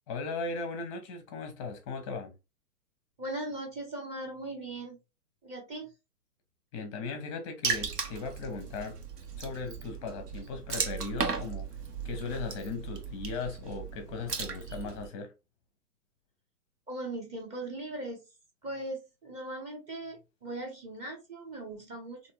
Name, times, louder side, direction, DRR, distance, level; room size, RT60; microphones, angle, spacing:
voice 1, 0.1-2.3 6.7-9.0 9.4-11.7 12.0-15.3, left 4 dB, 20° left, 0.6 m, -37 dB
voice 2, 3.2-5.0 5.4-5.9 16.9-18.2 18.6-22.3, right 1 dB, 15° right, 0.8 m, -39 dB
Water / Splash splatter, 7.6-15.1, right 5 dB, 80° right, 1.0 m, -36 dB
3.4 x 2.7 x 2.8 m
figure-of-eight pair, 120°, 47 cm